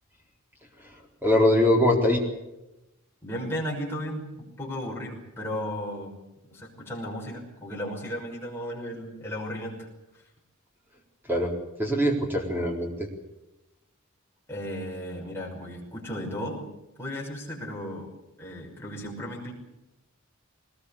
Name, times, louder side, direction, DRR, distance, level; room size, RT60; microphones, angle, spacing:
voice 1, 0.8-2.2 11.3-13.1, left 1 dB, 10° right, 1 dB, 4.0 m, -23 dB
voice 2, 3.2-6.1 6.5-9.9 14.5-16.7 17.0-18.1 18.4-19.5, equal, 10° left, -2 dB, 5.9 m, -35 dB
20.5 x 20.0 x 8.4 m, 0.95 s
head